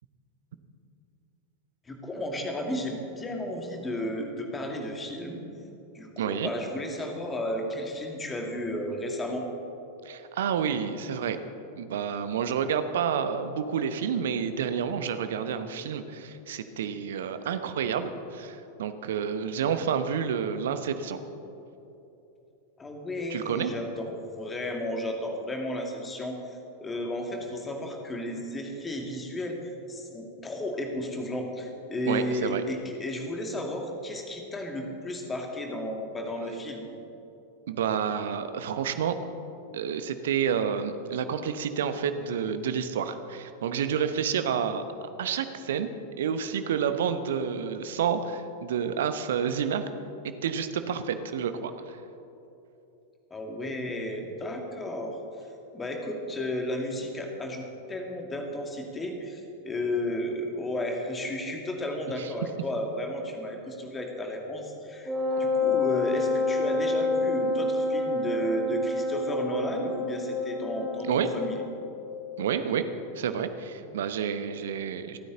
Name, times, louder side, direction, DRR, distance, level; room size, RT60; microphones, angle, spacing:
voice 1, 1.9-5.4 5.9-9.5 22.8-36.9 53.3-55.2 55.7-65.1 65.4-71.6, left 1 dB, 15° left, 2 dB, 2.1 m, -33 dB
voice 2, 6.2-6.5 10.0-11.4 11.8-21.2 23.3-23.7 32.1-32.6 37.7-39.1 39.7-44.8 45.2-45.9 46.2-49.9 50.4-52.0 62.2-62.3 71.0-71.5 72.4-72.8 73.1-75.2, right 7 dB, 60° right, 10 dB, 0.9 m, -29 dB
Wind instrument woodwind instrument, 65.0-71.7, left 2 dB, 10° right, 4.0 m, -28 dB
28.0 x 9.4 x 3.9 m, 3.0 s
figure-of-eight pair, 90°, 0 cm